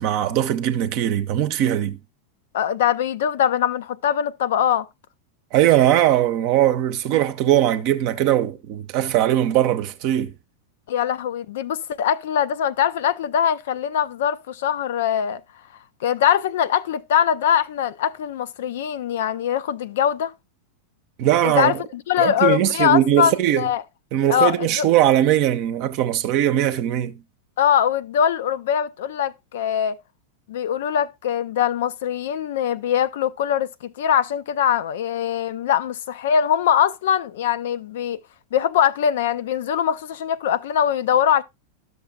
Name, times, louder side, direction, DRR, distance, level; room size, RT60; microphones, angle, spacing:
voice 1, 0.0-2.0 5.5-10.3 21.2-21.8 22.2-23.7 24.1-27.1, right 12 dB, 45° right, 0.7 m, -20 dB
voice 2, 2.5-4.9 10.9-15.4 16.0-20.3 21.4-23.8 24.3-24.9 27.6-30.0 30.5-38.2 38.5-41.4, left 9 dB, 55° left, 0.4 m, -22 dB
12.0 x 6.6 x 2.2 m
figure-of-eight pair, 90°, 0 cm